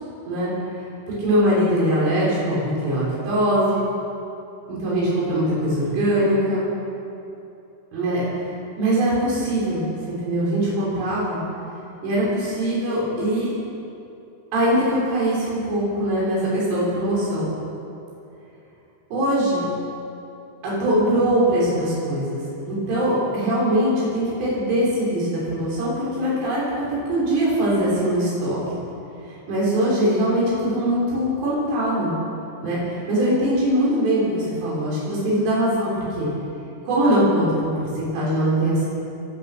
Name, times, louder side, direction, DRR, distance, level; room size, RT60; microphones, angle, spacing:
voice 1, 1.1-3.8 4.7-6.7 7.9-8.2 8.8-11.4 12.0-13.5 14.5-17.5 19.1-19.7 20.6-28.6 29.3-32.1 32.6-36.3 36.9-38.9, right 1 dB, 90° right, -6 dB, 9.2 m, -22 dB
25.5 x 18.5 x 6.2 m, 2.8 s
omnidirectional pair, 5.5 m